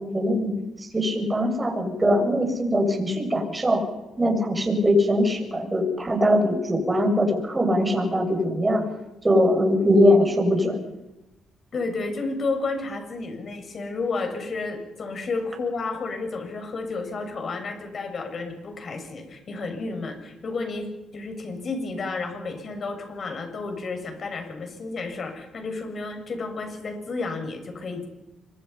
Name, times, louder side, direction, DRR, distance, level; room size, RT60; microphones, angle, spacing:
voice 1, 0.0-3.8 4.2-8.8 9.2-10.8, equal, 20° right, 4 dB, 7.0 m, -21 dB
voice 2, 11.7-28.1, left 3 dB, 45° left, 5 dB, 6.9 m, -31 dB
26.5 x 24.0 x 5.8 m, 1.0 s
cardioid pair, 90°, 0 cm